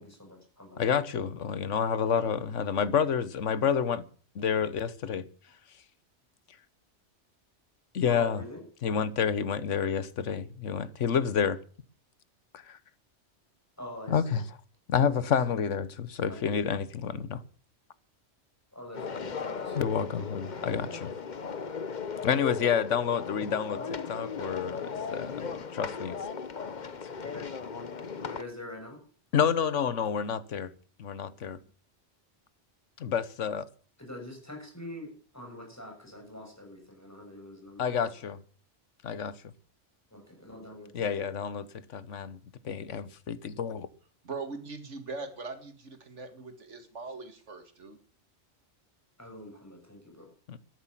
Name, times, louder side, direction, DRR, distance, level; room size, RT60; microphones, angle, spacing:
voice 1, 0.0-0.8 8.0-8.6 13.8-14.4 15.2-15.6 16.3-16.5 18.7-21.1 23.3-23.4 23.8-23.9 27.2-27.5 28.2-29.0 31.5-31.6 34.0-38.3 40.1-41.3 49.2-50.3, left 1 dB, 15° left, 6.6 m, -45 dB
voice 2, 0.8-4.1 4.3-5.3 7.9-8.4 8.8-11.6 12.5-12.8 14.1-14.4 14.9-17.4 19.8-21.1 22.2-23.8 24.1-26.2 27.0-27.1 29.3-30.7 31.0-31.6 33.0-33.7 37.8-38.4 39.0-39.4 40.9-42.4 42.6-43.9 50.5-50.6, left 7 dB, 80° left, 1.3 m, -29 dB
sound 1, 18.9-28.4, left 5 dB, 40° left, 1.0 m, -37 dB
voice 3, 44.2-48.0, right 3 dB, 75° right, 2.5 m, -41 dB
13.5 x 11.0 x 7.4 m
omnidirectional pair, 1.2 m